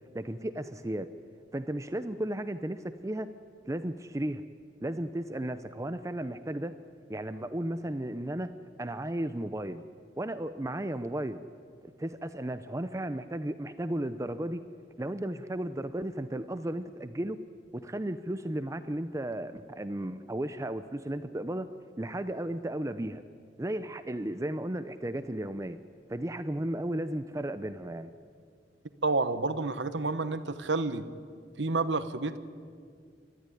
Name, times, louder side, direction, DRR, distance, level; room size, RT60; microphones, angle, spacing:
voice 1, 0.1-1.1 1.5-3.3 3.6-4.4 4.8-6.7 7.1-8.5 8.8-9.8 10.2-11.4 11.8-14.6 15.0-17.4 17.7-21.7 22.0-23.2 23.6-25.8 26.1-28.1, right 1 dB, 20° right, 11 dB, 0.6 m, -34 dB
voice 2, 29.0-31.0 31.6-32.4, right 3 dB, 85° right, 12 dB, 1.2 m, -29 dB
29.0 x 13.5 x 10.0 m, 2.2 s
head